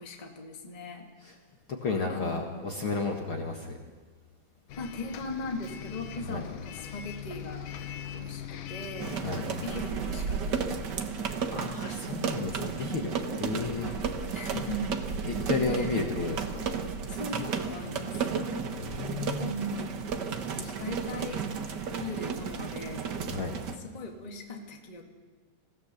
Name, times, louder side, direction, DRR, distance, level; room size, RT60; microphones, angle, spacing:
voice 1, 0.0-1.0 2.1-2.8 4.8-7.7 8.1-10.7 13.8-15.0 15.7-15.9 17.1-18.2 19.4-20.2 20.5-21.4 21.9-23.1 23.8-25.0, left 2 dB, 15° left, 1 dB, 1.7 m, -39 dB
voice 2, 1.8-3.8 6.3-6.5 9.2-9.4 11.2-13.9 15.3-16.6 18.8-19.5 23.3-23.6, left 4 dB, 45° left, 1 dB, 2.0 m, -32 dB
Bus, 4.7-9.9, left 9 dB, 75° left, 2.4 m, -41 dB
sound 1, 9.0-23.7, right 6 dB, 70° right, 1.0 m, -33 dB
27.0 x 17.0 x 6.9 m, 1.4 s
omnidirectional pair, 3.8 m